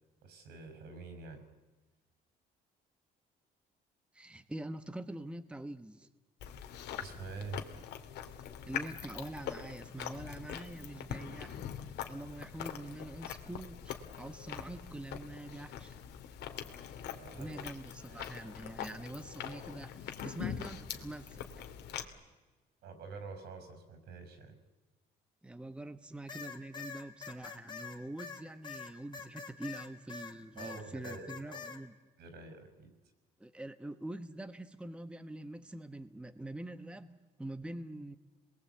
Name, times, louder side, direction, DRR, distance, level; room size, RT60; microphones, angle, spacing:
voice 1, 0.2-1.4 7.0-7.6 17.0-17.6 18.1-18.2 22.8-24.6 30.6-31.7 32.2-32.9, right 4 dB, 75° right, 8 dB, 5.7 m, -47 dB
voice 2, 4.1-6.1 8.6-11.6 12.1-16.0 17.3-21.4 25.4-31.9 33.4-38.2, right 1 dB, 5° right, 10 dB, 1.1 m, -45 dB
Chewing mastication, 6.4-22.0, left 9 dB, 80° left, 2.5 m, -43 dB
sound 1, 26.3-30.3 30.6-31.8, left 6 dB, 25° left, 3.0 m, -45 dB
28.5 x 21.0 x 8.3 m, 1.2 s
cardioid pair, 110°, 17 cm